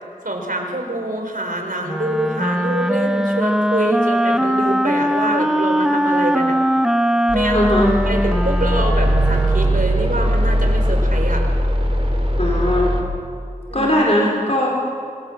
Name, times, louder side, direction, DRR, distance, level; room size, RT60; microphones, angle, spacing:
voice 1, 0.2-6.6 7.3-7.7 8.0-11.5 13.7-14.0, right 1 dB, 75° right, 3 dB, 4.5 m, -25 dB
Wind instrument woodwind instrument, 1.8-9.9, equal, 5° right, 0.9 m, -20 dB
sound 1, 7.3-13.0, equal, 40° right, 3.1 m, -19 dB
voice 2, 7.5-7.9 12.4-13.0 13.7-14.8, left 1 dB, 50° left, -2 dB, 4.3 m, -19 dB
26.0 x 23.0 x 7.4 m, 2.4 s
wide cardioid pair, 45°, 14 cm